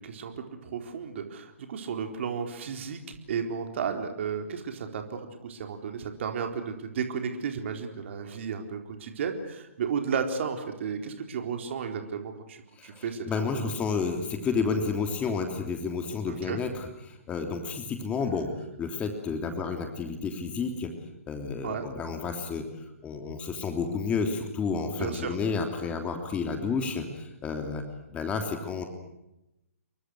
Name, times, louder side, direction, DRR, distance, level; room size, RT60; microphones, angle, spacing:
voice 1, 0.0-13.6 16.3-16.6 21.6-21.9 25.0-25.4, right 6 dB, 50° right, 5 dB, 4.1 m, -33 dB
voice 2, 12.8-21.0 21.3-22.7 23.0-27.9 28.1-28.8, left 5 dB, 15° left, 5 dB, 3.2 m, -31 dB
29.5 x 23.5 x 6.5 m, 0.89 s
hypercardioid pair, 140°, 8 cm